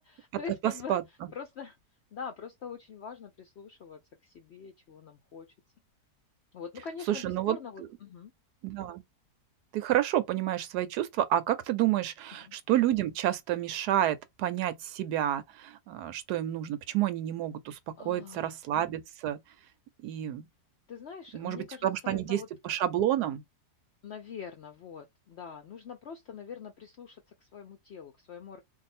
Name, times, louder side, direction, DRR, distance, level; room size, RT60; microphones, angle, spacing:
voice 1, 0.0-1.8 2.1-5.5 6.5-8.3 12.4-12.6 18.0-18.6 20.9-22.5 24.0-28.6, left 6 dB, 70° left, 0.6 m, -44 dB
voice 2, 7.1-7.6 8.6-9.0 9.7-19.4 20.0-20.5 21.3-23.4, right 12 dB, 80° right, 1.1 m, -29 dB
2.7 x 2.3 x 4.1 m
omnidirectional pair, 1.7 m